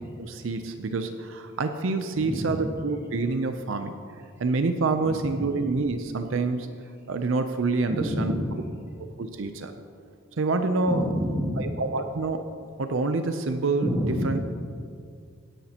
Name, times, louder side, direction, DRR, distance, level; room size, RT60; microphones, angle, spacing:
voice 1, 0.2-2.6 2.8-3.9 4.4-6.7 7.1-8.3 9.2-9.7 10.4-11.0 11.6-12.5 12.8-13.9 14.2-14.4, right 3 dB, 70° right, 8 dB, 0.6 m, -27 dB
voice 2, 2.1-2.7 5.0-5.2 7.9-8.5 10.9-11.7 13.8-14.6, equal, 10° right, -2 dB, 1.6 m, -28 dB
17.0 x 10.0 x 2.9 m, 2.2 s
head